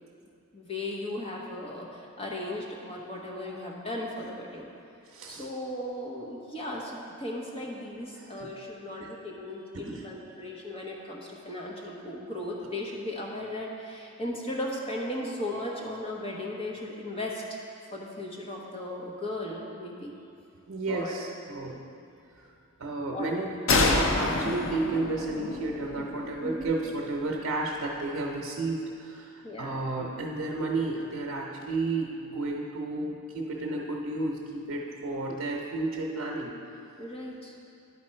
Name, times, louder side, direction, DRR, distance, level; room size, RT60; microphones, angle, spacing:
voice 1, 0.5-4.7 5.3-17.6 17.9-20.1 20.9-21.2 23.1-23.3 26.4-26.7 29.4-29.8 37.0-37.5, left 1 dB, 25° left, -2 dB, 0.9 m, -36 dB
voice 2, 5.1-5.5 8.1-8.5 9.0-9.1 9.7-10.1 20.7-21.8 22.3-22.5 22.8-36.5, right 2 dB, 85° right, -2 dB, 0.8 m, -32 dB
sound 1, 23.7-27.2, left 3 dB, 65° left, 0.6 m, -28 dB
11.0 x 4.2 x 4.3 m, 2.5 s
head